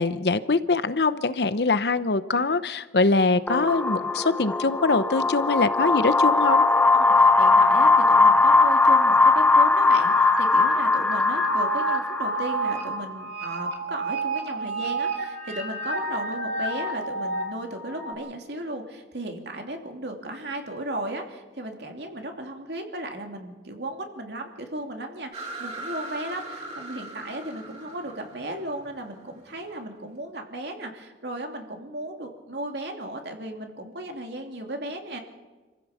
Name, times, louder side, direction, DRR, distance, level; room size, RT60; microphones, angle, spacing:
voice 1, 0.0-6.6, left 3 dB, 65° left, 13 dB, 0.8 m, -23 dB
sound 1, 3.5-12.9, left 3 dB, 10° left, 0.6 m, -20 dB
voice 2, 7.2-35.2, right 1 dB, 65° right, 3 dB, 2.9 m, -35 dB
sound 2, 9.7-18.1, right 2 dB, 85° right, 3.2 m, -31 dB
sound 3, 25.3-29.9, right 2 dB, 35° right, 4.5 m, -39 dB
26.5 x 15.0 x 7.2 m, 1.2 s
head